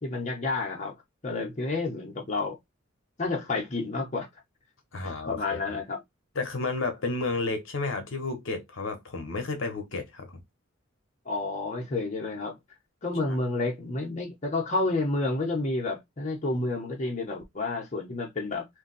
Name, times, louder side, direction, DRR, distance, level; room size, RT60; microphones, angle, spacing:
voice 1, 0.0-1.0 1.2-2.6 3.2-4.3 5.3-6.0 11.3-12.6 13.0-18.7, left 2 dB, 35° left, 0.8 m, -30 dB
voice 2, 4.9-5.6 6.3-10.4, left 3 dB, 65° left, 0.8 m, -31 dB
2.6 x 2.2 x 3.9 m
head